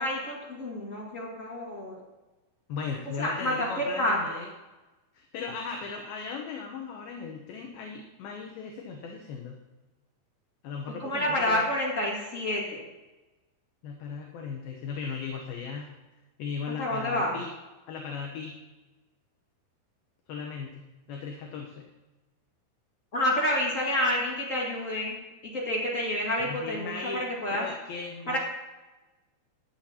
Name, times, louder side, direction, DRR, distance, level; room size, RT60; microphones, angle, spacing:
voice 1, 0.0-1.9 3.2-4.2 11.0-12.8 16.8-17.3 23.1-25.2 25.5-27.7 28.3-28.4, left 1 dB, 40° left, -4 dB, 1.1 m, -28 dB
voice 2, 2.7-4.5 5.1-9.6 10.6-11.6 13.8-15.9 16.4-17.5 17.9-18.6 20.3-21.9 26.4-28.4, left 5 dB, 70° left, 1 dB, 2.6 m, -37 dB
16.5 x 10.5 x 2.9 m, 1.1 s
omnidirectional pair, 4.8 m